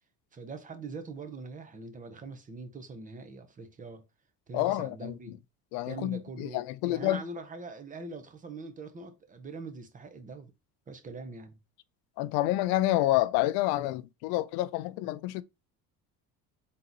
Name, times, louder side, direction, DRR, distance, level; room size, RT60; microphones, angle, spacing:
voice 1, 0.3-4.0 4.5-5.4 5.9-10.5 10.9-11.6, right 3 dB, 20° right, 0.7 m, -43 dB
voice 2, 4.5-5.2 5.7-7.2 12.2-15.4, left 16 dB, 85° left, 0.5 m, -28 dB
3.8 x 2.9 x 3.9 m
cardioid pair, 140°, 36 cm